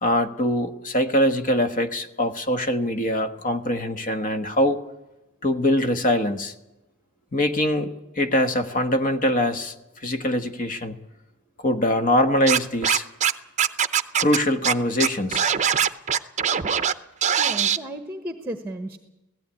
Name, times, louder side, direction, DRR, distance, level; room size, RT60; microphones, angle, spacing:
voice 1, 0.0-4.8 5.4-6.5 7.3-9.7 10.0-11.0 11.6-13.0 14.2-15.5, left 1 dB, 40° left, 8 dB, 1.4 m, -23 dB
Scratching (performance technique), 12.5-13.3 13.6-14.4 14.6-14.7 15.0-16.9 17.2-17.8, right 8 dB, 35° right, 0.7 m, -21 dB
voice 2, 17.4-19.0, right 1 dB, 10° right, 8 dB, 1.1 m, -34 dB
16.5 x 16.0 x 9.8 m, 0.98 s
head